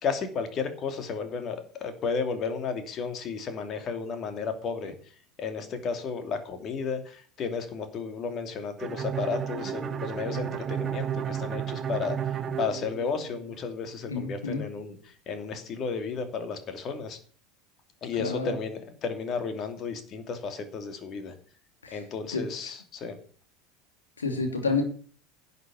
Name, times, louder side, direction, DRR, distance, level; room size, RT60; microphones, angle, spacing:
voice 1, 0.0-4.9 5.4-12.1 12.6-15.0 15.3-17.2 18.0-21.3 21.9-23.1, left 5 dB, 40° left, 7 dB, 2.8 m, -33 dB
Bowed string instrument, 8.8-13.6, right 9 dB, 30° right, 1.1 m, -32 dB
voice 2, 14.1-14.6 18.2-18.6 21.8-22.0 22.3-22.5 24.2-24.8, left 4 dB, 85° left, 4 dB, 3.0 m, -29 dB
11.0 x 6.8 x 8.5 m, 0.44 s
hypercardioid pair, 80°, 0 cm